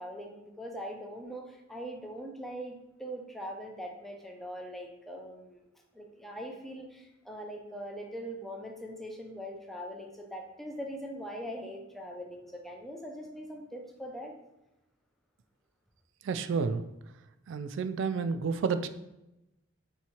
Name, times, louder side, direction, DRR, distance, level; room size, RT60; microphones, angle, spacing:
voice 1, 0.0-5.6 5.9-14.3, equal, ahead, 1 dB, 0.5 m, -41 dB
voice 2, 16.2-16.8 17.5-18.9, right 5 dB, 65° right, 10 dB, 0.3 m, -30 dB
3.5 x 2.9 x 4.3 m, 0.91 s
head